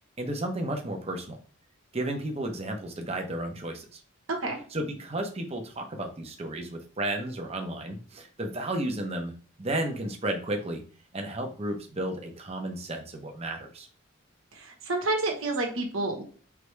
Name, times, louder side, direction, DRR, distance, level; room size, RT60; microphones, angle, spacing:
voice 1, 0.2-1.4 1.9-4.0 4.7-9.3 9.6-10.8 11.1-13.9, right 1 dB, 30° right, 3 dB, 0.9 m, -33 dB
voice 2, 4.3-4.6 14.5-16.2, right 2 dB, 75° right, 1 dB, 1.2 m, -29 dB
4.8 x 3.3 x 3.3 m, 0.43 s
head